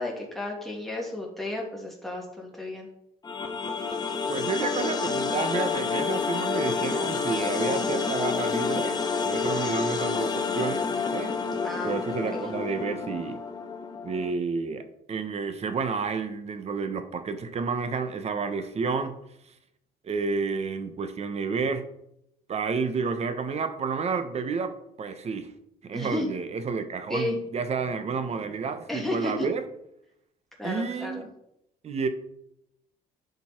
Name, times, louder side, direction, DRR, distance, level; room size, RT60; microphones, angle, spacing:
voice 1, 0.0-2.9 11.6-12.4 25.9-26.3 27.1-27.4 28.9-29.5 30.6-31.2, left 2 dB, ahead, 2.8 m, -33 dB
sound 1, 3.2-14.3, left 5 dB, 25° left, 1.3 m, -29 dB
voice 2, 4.3-9.0 9.2-10.8 11.1-11.4 11.8-13.4 14.0-19.2 20.0-21.9 22.5-25.5 25.8-29.6 30.6-31.3 31.8-32.1, right 5 dB, 40° right, 1.1 m, -30 dB
10.5 x 5.5 x 4.5 m
cardioid pair, 110°, 17 cm